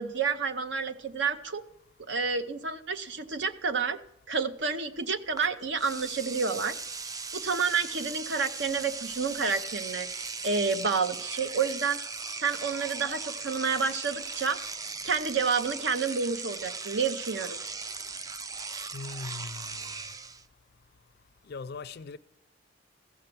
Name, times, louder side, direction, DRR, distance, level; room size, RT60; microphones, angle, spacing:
voice 1, 0.0-1.6 2.1-4.0 4.3-6.7 7.3-10.1 10.4-12.0 12.4-14.6 15.0-17.6, right 5 dB, 65° right, 0.8 m, -29 dB
Engine / Domestic sounds home sounds, 5.4-5.5 5.8-20.4, right 4 dB, 20° right, 0.3 m, -38 dB
voice 2, 18.9-19.9 21.5-22.2, left 4 dB, 55° left, 0.4 m, -40 dB
15.5 x 6.6 x 5.9 m
head